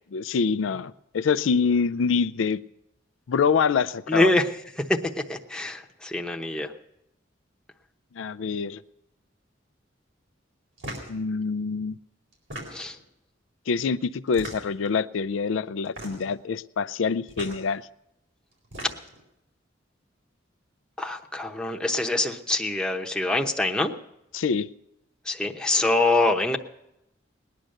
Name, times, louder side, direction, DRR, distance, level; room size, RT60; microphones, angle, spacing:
voice 1, 0.1-2.6 3.3-4.3 8.2-8.8 11.1-12.0 13.7-17.8 24.3-24.7, left 5 dB, 90° left, 0.4 m, -25 dB
voice 2, 4.1-4.5 4.9-5.0 5.3-6.7 12.7-12.9 21.0-23.9 25.3-26.6, left 2 dB, 5° left, 0.9 m, -24 dB
sound 1, 10.8-11.1 12.3-13.0 14.3-14.9 15.8-16.3 17.3-17.6 18.5-19.2, right 1 dB, 75° right, 4.2 m, -38 dB
19.5 x 10.5 x 6.5 m
head